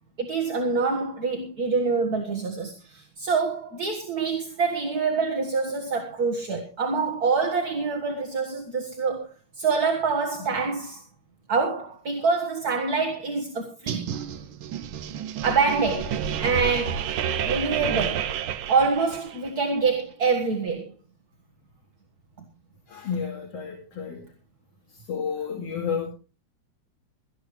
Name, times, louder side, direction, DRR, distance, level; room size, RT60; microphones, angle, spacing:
voice 1, 0.2-9.3 9.6-11.0 11.5-14.1 15.4-17.1 17.5-18.3 18.7-20.9, right 4 dB, 40° right, 1.8 m, -26 dB
sound 1, 13.9-19.5, right 8 dB, 75° right, 1.2 m, -30 dB
voice 2, 22.9-24.2 25.1-26.1, left 6 dB, 55° left, 3.5 m, -31 dB
18.0 x 13.5 x 3.2 m
omnidirectional pair, 3.3 m